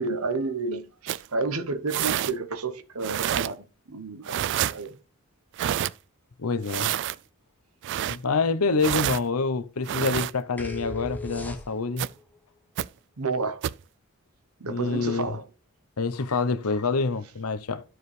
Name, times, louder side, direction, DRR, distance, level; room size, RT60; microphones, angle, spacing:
voice 1, 0.0-5.0 13.2-13.6 14.6-15.4, right 3 dB, 75° right, 1.0 m, -31 dB
sound 1, 1.1-1.3 1.9-2.3 3.0-3.5 4.3-4.8 5.6-5.9 6.7-7.2 7.8-8.2 8.8-9.2 9.9-10.3 12.0-12.1 12.8-12.9 13.6-13.8, right 11 dB, 55° right, 0.3 m, -27 dB
voice 2, 6.4-6.9 8.1-12.1 14.7-15.4 16.0-17.8, left 4 dB, 80° left, 0.8 m, -26 dB
sound 2, 10.6-12.1, left 2 dB, 10° left, 0.9 m, -37 dB
12.5 x 4.7 x 3.3 m
head